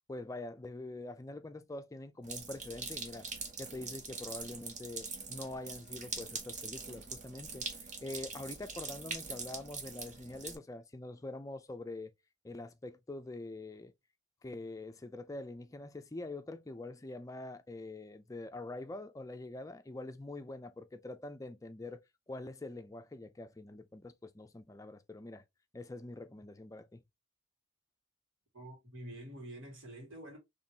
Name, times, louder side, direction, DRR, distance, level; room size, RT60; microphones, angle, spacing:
voice 1, 0.1-3.3 3.6-12.1 12.4-13.9 14.4-22.0 22.3-25.4 25.7-27.0, left 2 dB, 15° left, 0.4 m, -45 dB
sound 1, 2.2-10.6, right 4 dB, 40° right, 1.0 m, -43 dB
voice 2, 28.5-30.4, right 1 dB, 90° right, 1.9 m, -47 dB
4.3 x 3.1 x 2.7 m
head